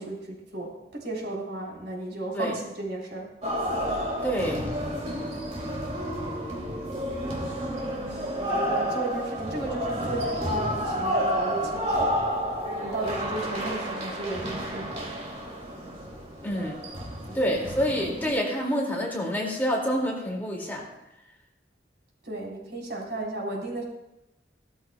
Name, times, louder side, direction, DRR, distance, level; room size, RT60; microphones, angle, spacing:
voice 1, 0.0-3.3 7.8-12.3 12.8-15.1 17.3-17.6 22.2-23.8, right 2 dB, 75° right, -3 dB, 3.9 m, -34 dB
sound 1, 3.4-18.3, equal, 40° right, 2.5 m, -30 dB
voice 2, 4.2-4.7 16.4-16.8 17.3-20.9, equal, 10° left, -2 dB, 2.2 m, -27 dB
17.0 x 13.5 x 2.3 m, 0.92 s
head